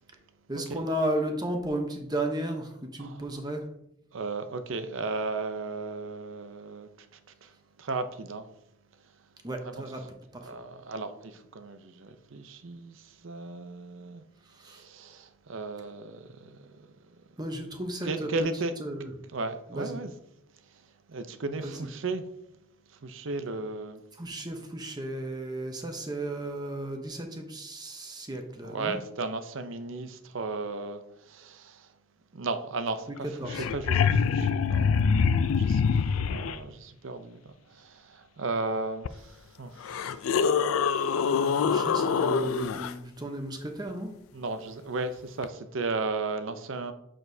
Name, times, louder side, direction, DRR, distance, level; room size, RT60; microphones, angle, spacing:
voice 1, 0.5-3.7 9.4-10.0 10.4-10.5 14.6-14.8 17.4-18.3 18.8-19.1 19.7-20.0 21.6-21.9 24.2-29.0 33.1-33.7 41.2-44.1, right 1 dB, 20° right, 0.8 m, -34 dB
voice 2, 4.1-6.9 7.4-7.5 7.8-8.5 9.6-9.8 10.4-14.2 14.6-16.9 18.0-18.7 19.3-20.1 21.1-22.2 23.0-24.0 28.6-31.9 32.3-39.3 39.6-39.7 40.8-41.5 44.3-46.9, right 3 dB, 65° right, 0.6 m, -35 dB
sound 1, 33.2-33.3 33.4-36.6 39.0-39.1 39.8-42.9 45.4-45.5, left 6 dB, 80° left, 0.3 m, -25 dB
6.9 x 6.1 x 2.7 m
head